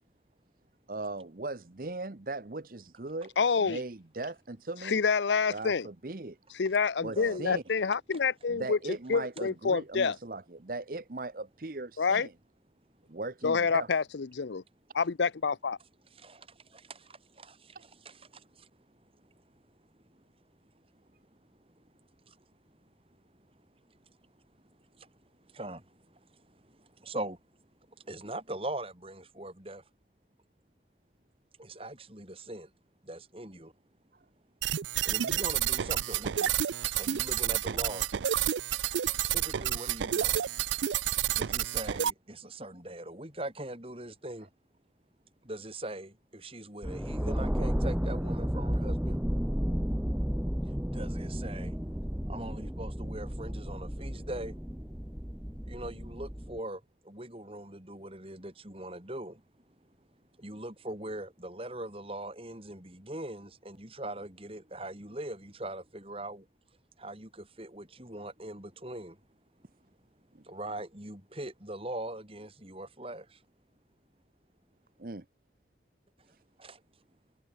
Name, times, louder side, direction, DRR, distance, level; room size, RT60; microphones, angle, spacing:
voice 1, 0.9-5.0 5.5-6.4 7.0-7.6 8.5-12.3 13.1-13.9 70.3-70.5 75.0-75.2, right 2 dB, 50° right, 1.0 m, -38 dB
voice 2, 3.4-3.8 4.8-5.9 6.6-8.8 9.1-10.2 12.0-12.3 13.4-14.6 14.9-15.8, left 5 dB, 80° left, 0.6 m, -27 dB
voice 3, 7.2-7.6 16.2-18.7 19.2-19.3 20.1-20.2 20.9-21.0 21.7-21.8 22.3-22.4 23.9-24.1 24.9-25.1 25.4-27.4 28.0-29.8 31.6-32.7 33.0-33.7 35.0-36.5 36.9-38.1 39.3-40.5 41.3-44.5 45.4-49.2 50.9-51.7 52.3-54.6 55.7-59.4 60.4-66.5 67.0-69.2 70.4-73.4 76.6-76.8, right 1 dB, 30° right, 4.0 m, -41 dB
sound 1, 34.6-42.1, right 10 dB, 85° right, 0.5 m, -30 dB
sound 2, 46.8-56.6, equal, 5° right, 1.0 m, -33 dB
head